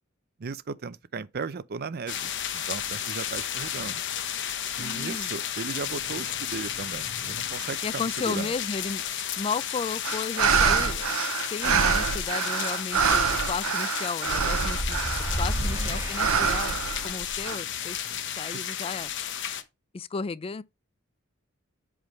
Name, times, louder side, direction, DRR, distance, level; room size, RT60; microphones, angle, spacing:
voice 1, 0.4-4.0 4.8-8.5 15.6-16.0, right 4 dB, 50° right, 0.5 m, -36 dB
sound 1, 2.1-19.6, left 10 dB, 60° left, 0.9 m, -33 dB
voice 2, 4.8-5.3 7.8-9.0 9.4-11.1 11.5-15.0 15.4-16.8 17.0-19.1 19.9-20.6, left 4 dB, 25° left, 0.4 m, -34 dB
sound 2, 10.0-15.6 16.1-17.6, right 6 dB, 85° right, 0.7 m, -26 dB
sound 3, 14.6-17.2, equal, 15° right, 1.3 m, -32 dB
8.1 x 3.6 x 5.1 m
head